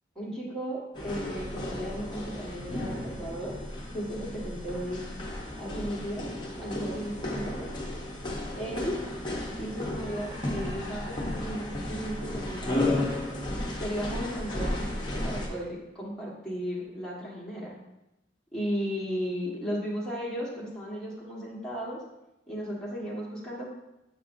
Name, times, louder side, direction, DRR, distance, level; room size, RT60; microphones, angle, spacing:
voice 1, 0.1-3.6 3.9-5.0 5.6-6.3 6.6-7.7 8.5-8.9 9.6-13.0 13.8-17.8 18.5-22.0 22.5-23.7, equal, 5° left, -7 dB, 1.4 m, -35 dB
sound 1, 0.9-15.5, left 1 dB, 25° left, 0.8 m, -34 dB
7.0 x 5.5 x 2.6 m, 0.91 s
head